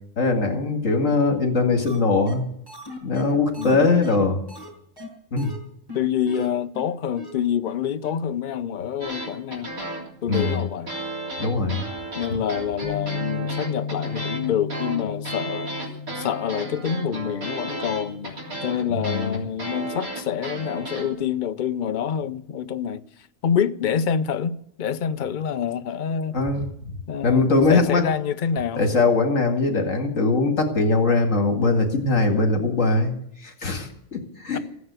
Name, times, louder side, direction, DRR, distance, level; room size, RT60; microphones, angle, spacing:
voice 1, 0.2-2.4 3.0-4.4 5.3-5.5 10.3-10.6 11.4-11.8 12.3-12.4 19.0-19.4 26.3-26.9 27.2-28.1 28.7-34.6, left 3 dB, 65° left, 2.5 m, -21 dB
sound 1, 1.9-2.0 2.3-2.4 2.7-4.7 5.0-5.1 5.4-5.6 5.9-6.0 6.3-6.5 6.7-6.8 7.2-7.3 7.7-7.8 8.0-8.1, left 1 dB, 15° right, 5.4 m, -38 dB
voice 2, 5.9-9.7 10.2-10.9 11.6-11.9 12.2-15.7 16.1-23.0 23.4-26.4 27.1-28.8 34.5-34.6, left 8 dB, 45° left, 0.7 m, -27 dB
sound 2, 9.0-21.1, right 1 dB, 85° right, 3.8 m, -33 dB
Bass guitar, 12.8-19.1, left 6 dB, 40° right, 3.3 m, -35 dB
15.5 x 9.6 x 8.2 m
omnidirectional pair, 1.4 m